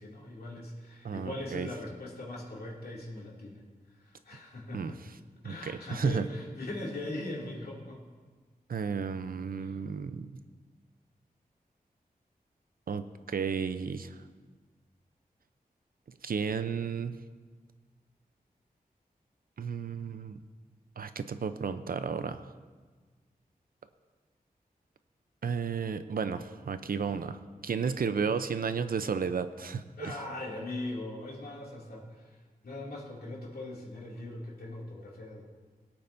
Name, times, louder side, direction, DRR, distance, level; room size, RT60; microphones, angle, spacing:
voice 1, 0.0-3.6 4.0-5.0 5.4-8.0 9.6-9.7 30.0-32.3 32.6-35.4, left 2 dB, 85° left, -4 dB, 2.6 m, -40 dB
voice 2, 1.0-1.7 4.7-5.1 5.4-6.3 8.7-10.3 12.9-14.2 16.2-17.2 19.6-20.4 21.0-22.5 25.4-30.2, right 6 dB, 70° right, 11 dB, 0.6 m, -33 dB
21.0 x 8.7 x 2.6 m, 1.4 s
wide cardioid pair, 80°, 16 cm